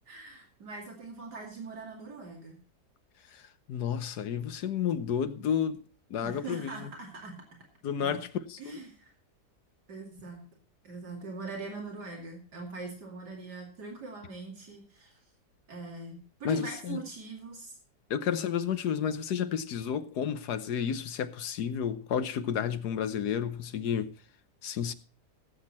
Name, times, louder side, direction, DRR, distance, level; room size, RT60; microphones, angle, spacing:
voice 1, 0.1-2.6 6.2-7.4 8.0-8.2 8.6-9.1 9.9-10.5 10.8-15.2 15.7-17.8, right 3 dB, 75° right, 3.1 m, -42 dB
voice 2, 3.3-5.8 6.1-6.9 7.8-8.8 16.4-17.0 18.1-24.1 24.6-24.9, left 8 dB, 75° left, 1.4 m, -31 dB
17.5 x 8.0 x 4.3 m
omnidirectional pair, 1.8 m